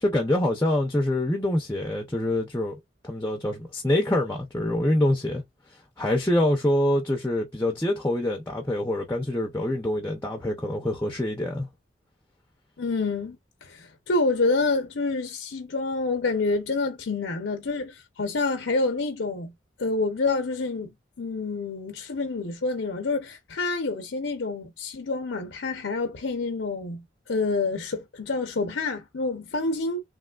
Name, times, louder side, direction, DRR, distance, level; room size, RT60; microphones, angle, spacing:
voice 1, 0.0-2.7 3.0-5.4 6.0-11.7, left 1 dB, 10° left, 0.5 m, -25 dB
voice 2, 12.8-19.5 19.8-20.9 21.2-30.0, left 3 dB, 80° left, 0.7 m, -28 dB
3.2 x 3.0 x 2.3 m
head